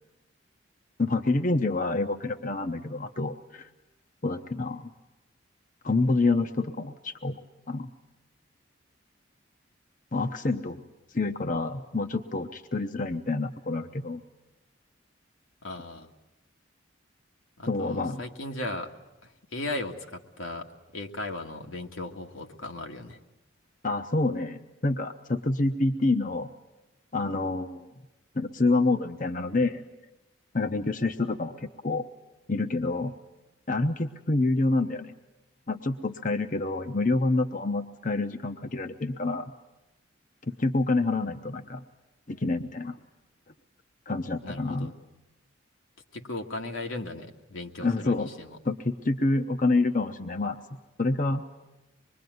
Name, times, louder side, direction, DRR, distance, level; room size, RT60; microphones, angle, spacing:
voice 1, 1.0-3.7 4.2-4.9 5.8-7.4 7.7-7.9 10.1-10.8 11.1-14.2 17.7-18.2 23.8-26.5 27.1-27.9 28.3-29.8 30.5-32.0 32.5-33.1 33.7-35.1 35.7-39.5 40.5-41.8 42.3-43.0 44.1-44.9 47.8-48.3 48.6-50.6 51.0-51.4, left 2 dB, 40° left, 7 dB, 0.8 m, -27 dB
voice 2, 15.6-16.1 17.6-18.9 19.2-23.2 44.4-44.9 46.1-48.6, left 2 dB, 85° left, 3 dB, 2.0 m, -37 dB
25.5 x 22.0 x 9.4 m, 0.98 s
head